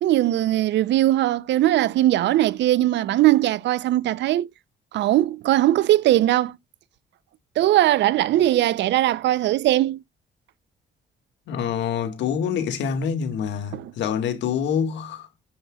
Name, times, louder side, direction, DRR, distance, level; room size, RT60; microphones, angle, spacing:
voice 1, 0.0-4.5 4.9-6.5 7.6-10.0 13.7-13.9, right 14 dB, 75° right, 0.6 m, -20 dB
voice 2, 11.5-15.3, left 7 dB, 85° left, 1.8 m, -26 dB
9.5 x 5.6 x 2.3 m
cardioid pair, 95°, 18 cm